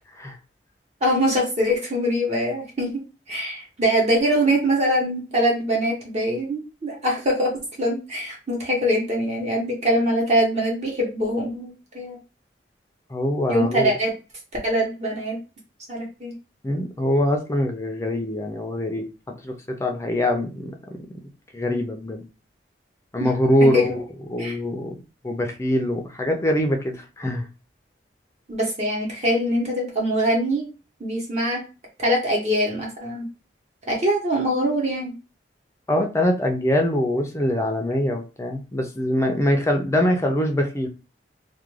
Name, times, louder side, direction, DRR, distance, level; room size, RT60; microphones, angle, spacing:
voice 1, 1.0-2.9 3.3-7.5 7.8-12.2 13.5-14.1 14.6-15.4 15.9-16.3 23.2-23.3 23.7-23.9 24.4-24.6 28.5-30.7 31.0-31.6 32.0-33.3 33.9-35.1, equal, 40° right, -2 dB, 0.8 m, -23 dB
voice 2, 13.1-13.9 16.6-20.7 21.5-22.2 23.1-24.0 24.3-25.0 25.2-27.4 35.9-40.9, left 1 dB, 15° left, 3 dB, 0.4 m, -23 dB
2.4 x 2.2 x 3.0 m, 0.32 s
head